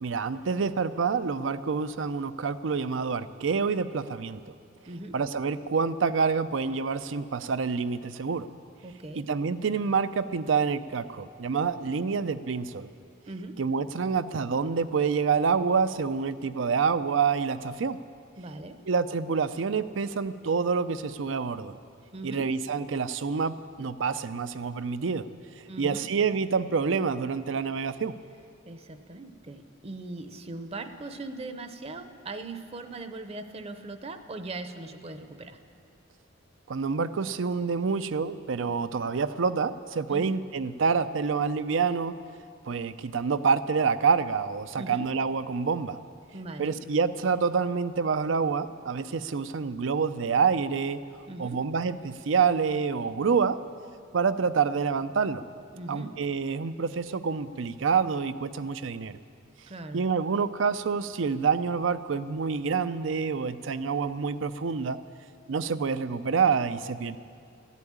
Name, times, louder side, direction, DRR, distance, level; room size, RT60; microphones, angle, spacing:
voice 1, 0.0-4.4 5.1-8.5 9.2-12.9 13.6-18.0 18.9-21.8 22.2-25.3 25.8-28.1 36.7-42.1 42.6-46.0 46.6-51.0 51.4-53.6 54.1-55.4 55.9-59.2 59.9-65.0 65.5-67.2, right 5 dB, 70° right, 12 dB, 0.5 m, -27 dB
voice 2, 8.8-9.2 13.3-13.6 18.4-18.8 22.1-22.5 25.7-26.1 28.6-35.6 40.1-40.3 44.8-45.1 46.3-46.8 51.3-51.6 55.7-56.2 59.7-60.0, right 2 dB, 30° right, 9 dB, 0.7 m, -40 dB
14.0 x 8.3 x 10.0 m, 2.3 s
head